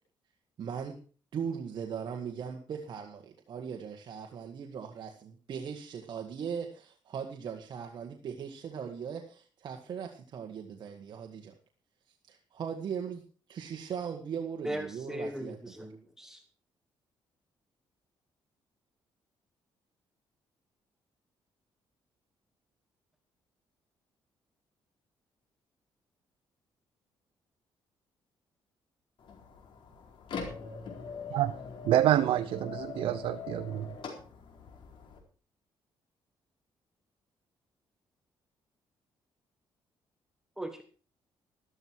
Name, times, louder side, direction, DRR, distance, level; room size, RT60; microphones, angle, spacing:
voice 1, 0.6-1.0 1.3-11.5 12.3-13.2 13.5-15.9, right 7 dB, 55° right, 2 dB, 1.7 m, -39 dB
voice 2, 14.6-16.4 40.6-40.8, right 1 dB, 5° right, 6 dB, 1.4 m, -38 dB
sound 1, 29.2-35.2, left 5 dB, 65° left, 4.3 m, -43 dB
voice 3, 31.8-33.9, right 12 dB, 80° right, 11 dB, 0.6 m, -27 dB
13.5 x 13.0 x 4.7 m, 0.39 s
cardioid pair, 120°, 9 cm